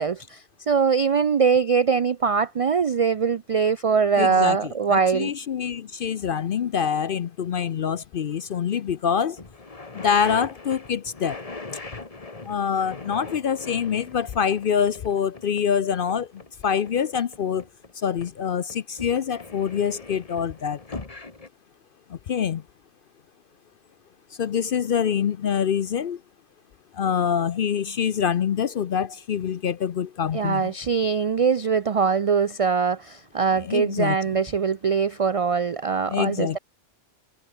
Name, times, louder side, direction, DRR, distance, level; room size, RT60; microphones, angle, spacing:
voice 1, 0.0-5.3 30.3-36.6, right 6 dB, 60° right, 0.3 m, -22 dB
voice 2, 4.2-9.4 9.9-11.4 12.4-16.3 16.6-17.6 18.0-21.0 22.1-22.6 24.4-26.2 26.9-30.7 33.6-34.4 36.1-36.6, left 7 dB, 55° left, 0.7 m, -25 dB
sound 1, 8.9-9.0 9.4-17.9 18.2-21.5, left 3 dB, 30° left, 1.7 m, -41 dB
omnidirectional pair, 1.2 m